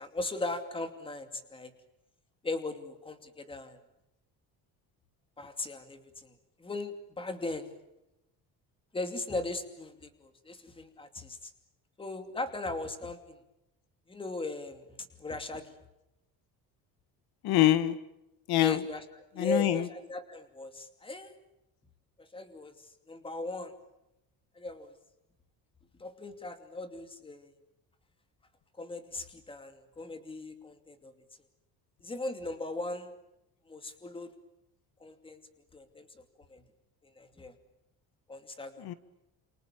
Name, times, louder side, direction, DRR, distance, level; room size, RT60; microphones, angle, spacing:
voice 1, 0.0-1.7 2.4-3.8 5.4-6.3 6.6-7.7 8.9-11.5 12.0-13.4 14.1-15.7 18.6-19.0 19.3-21.3 22.2-22.7 23.1-23.7 24.5-24.9 26.0-27.5 28.8-31.1 32.0-33.1 33.7-34.3 35.0-35.4 35.7-36.2 36.5-36.6 37.2-37.5 38.3-38.9, left 2 dB, 15° left, 8 dB, 2.6 m, -38 dB
voice 2, 17.4-18.0 18.5-18.8 19.4-19.9 38.8-38.9, left 14 dB, 80° left, 13 dB, 1.7 m, -25 dB
29.5 x 28.0 x 7.2 m, 0.90 s
cardioid pair, 175°, 38 cm